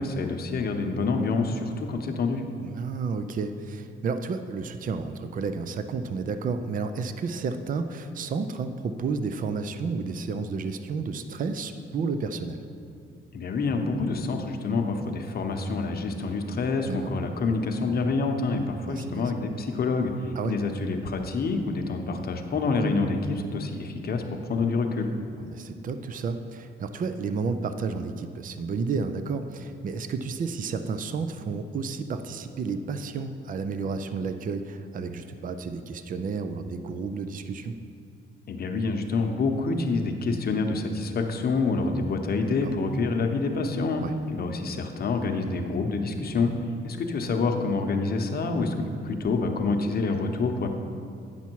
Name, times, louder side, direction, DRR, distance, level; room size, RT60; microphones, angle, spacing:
voice 1, 0.0-2.4 13.3-25.1 38.5-44.0 44.3-46.5 46.8-50.7, left 3 dB, 50° left, 5 dB, 0.8 m, -27 dB
voice 2, 2.6-12.6 16.8-17.1 18.9-19.3 20.4-20.5 25.4-37.8 42.5-42.7 44.0-44.1, right 4 dB, 45° right, 9 dB, 0.5 m, -31 dB
9.5 x 5.8 x 4.6 m, 2.4 s
cardioid pair, 90°, 20 cm